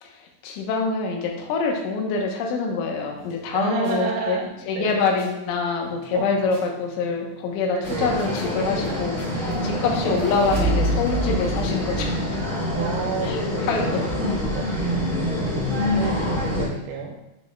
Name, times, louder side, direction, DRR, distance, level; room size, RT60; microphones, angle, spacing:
voice 1, 0.0-4.4 4.7-12.4 13.2-13.4 13.7-14.0 16.0-16.1, left 4 dB, 75° left, 1 dB, 3.3 m, -25 dB
sound 1, 3.0-5.3 5.8-11.0, left 1 dB, 60° left, 4.5 m, -42 dB
voice 2, 3.5-5.1 6.1-6.3 7.7-8.2 9.8-10.3 12.7-15.0 15.9-17.2, right 5 dB, 85° right, 0 dB, 3.1 m, -31 dB
sound 2, 7.8-16.7, left 1 dB, 30° right, 1.5 m, -26 dB
sound 3, 9.9-13.3, right 2 dB, 60° right, 2.0 m, -28 dB
8.8 x 6.0 x 2.3 m, 0.91 s
omnidirectional pair, 5.8 m